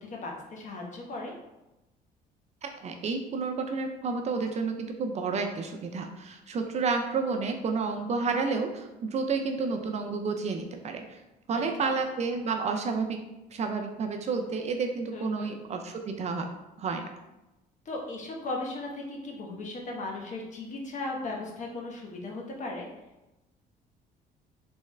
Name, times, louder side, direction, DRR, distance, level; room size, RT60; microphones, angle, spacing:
voice 1, 0.0-1.3 11.5-11.9 15.1-15.5 17.8-22.9, left 2 dB, 45° left, 0 dB, 1.0 m, -37 dB
voice 2, 2.6-11.2 11.5-13.2 13.5-16.5 16.8-17.1, right 4 dB, 40° right, 5 dB, 0.4 m, -30 dB
3.5 x 3.2 x 3.2 m, 0.98 s
cardioid pair, 110°, 17 cm